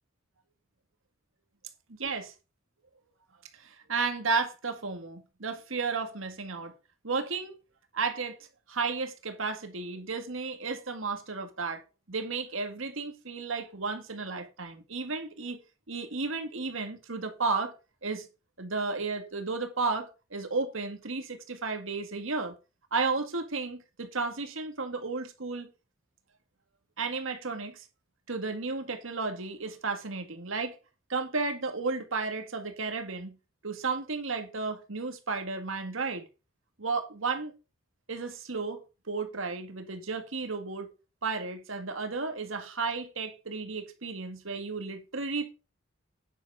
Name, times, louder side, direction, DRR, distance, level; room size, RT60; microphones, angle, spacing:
voice 1, 2.0-2.3 3.5-6.7 7.0-7.6 7.9-8.4 8.7-11.8 12.1-15.6 15.9-17.7 18.0-18.3 18.6-22.5 22.9-25.7 27.0-27.8 28.3-30.8 31.1-33.4 33.6-36.2 36.8-37.5 38.1-38.8 39.1-40.9 41.2-45.5, right 4 dB, 75° right, 1.9 m, -33 dB
9.9 x 7.3 x 4.8 m
head